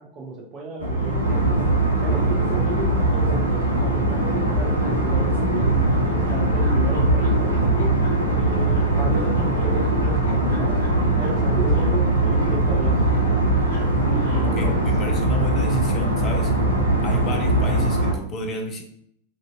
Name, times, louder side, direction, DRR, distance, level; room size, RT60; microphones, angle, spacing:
voice 1, 0.0-1.6 2.0-5.7 6.1-7.9 8.4-10.8 11.2-13.0 14.0-14.7, right 3 dB, 30° right, 0 dB, 0.7 m, -34 dB
sound 1, 0.8-18.1, right 1 dB, 90° right, 0.5 m, -21 dB
sound 2, 4.4-14.6, left 1 dB, 65° left, 0.8 m, -36 dB
voice 2, 14.4-16.6 17.0-18.8, equal, 30° left, 3 dB, 0.5 m, -32 dB
2.6 x 2.1 x 2.5 m, 0.69 s
figure-of-eight pair, 90°, 0 cm